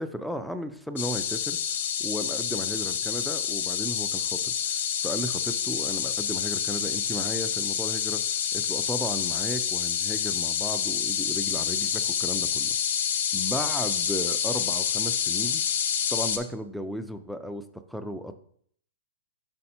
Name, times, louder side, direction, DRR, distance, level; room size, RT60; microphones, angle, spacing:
voice 1, 0.0-1.6 2.0-4.7 5.0-8.2 8.5-12.8 13.3-15.6 16.1-17.6 17.9-18.4, equal, ahead, 8 dB, 0.3 m, -35 dB
sound 1, 1.0-16.4, left 8 dB, 75° left, 0.8 m, -28 dB
5.4 x 4.0 x 4.3 m, 0.62 s
hypercardioid pair, 155°, 0 cm